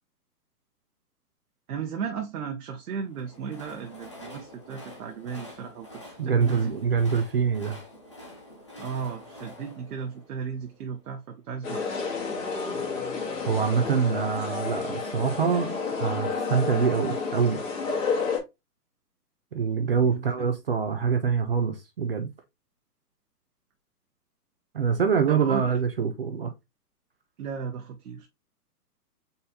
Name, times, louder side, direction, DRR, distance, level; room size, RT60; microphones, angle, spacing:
voice 1, 1.7-6.7 8.8-11.8 20.0-20.5 25.3-25.8 27.4-28.3, right 6 dB, 60° right, 0.9 m, -35 dB
Train, 3.0-11.1, left 1 dB, 20° left, 0.4 m, -47 dB
voice 2, 6.2-7.8 13.5-17.6 19.5-22.3 24.7-26.5, right 6 dB, 40° right, 0.4 m, -25 dB
sound 1, 11.6-18.4, left 4 dB, 55° left, 2.0 m, -30 dB
4.2 x 4.0 x 2.7 m
hypercardioid pair, 150°, 47 cm